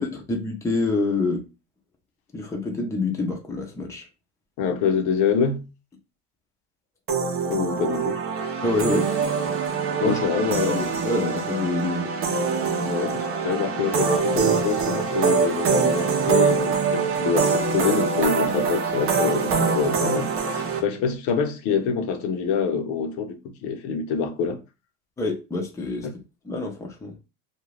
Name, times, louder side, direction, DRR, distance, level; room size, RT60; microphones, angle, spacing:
voice 1, 0.0-1.4 2.3-4.0 8.6-9.1 10.0-10.2 10.6-12.1 25.2-26.1 26.4-27.1, left 2 dB, 10° left, 0.5 m, -26 dB
voice 2, 4.6-5.7 7.5-8.2 10.0-10.9 12.8-24.6, left 6 dB, 65° left, 0.7 m, -26 dB
sound 1, 7.1-20.8, right 5 dB, 40° right, 0.6 m, -24 dB
2.5 x 2.2 x 3.1 m
supercardioid pair, 120°, 32 cm